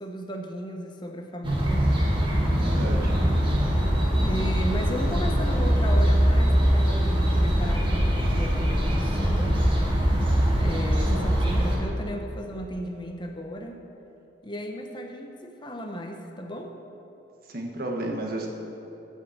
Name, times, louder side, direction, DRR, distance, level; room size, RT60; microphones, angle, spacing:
voice 1, 0.0-1.9 2.9-3.9 4.2-9.6 10.6-13.8 14.4-16.8, equal, 25° left, 3 dB, 0.8 m, -35 dB
sound 1, 1.4-11.8, equal, 30° right, 1.7 m, -22 dB
voice 2, 2.5-3.3 17.5-18.5, right 1 dB, 55° right, 1 dB, 1.5 m, -32 dB
14.0 x 5.6 x 7.4 m, 2.9 s
head